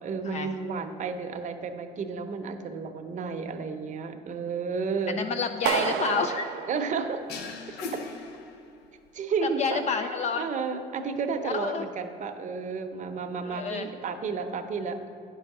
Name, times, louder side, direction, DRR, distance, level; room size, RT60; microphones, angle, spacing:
voice 1, 0.0-5.2 6.7-7.2 7.7-7.8 9.1-9.8 10.4-15.0, right 5 dB, 45° right, 7 dB, 0.7 m, -32 dB
voice 2, 5.1-6.5 9.4-10.5 11.4-11.9 13.4-13.9, left 5 dB, 40° left, 7 dB, 0.4 m, -29 dB
Clapping, 5.7-7.7, right 9 dB, 90° right, 0.7 m, -31 dB
sound 1, 7.3-9.1, left 4 dB, 85° left, 0.7 m, -39 dB
8.9 x 5.5 x 6.0 m, 2.5 s
cardioid pair, 110°, 17 cm